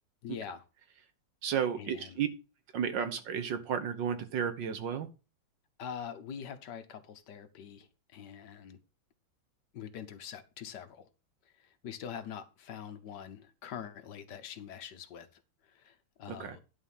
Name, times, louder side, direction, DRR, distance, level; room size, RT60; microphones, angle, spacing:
voice 1, 0.2-0.6 1.8-2.2 5.8-8.8 9.7-11.1 11.4-16.6, left 8 dB, 65° left, 1.5 m, -44 dB
voice 2, 1.4-2.3 2.7-5.1 16.3-16.6, right 8 dB, 65° right, 1.6 m, -33 dB
11.0 x 3.7 x 7.1 m
omnidirectional pair, 2.2 m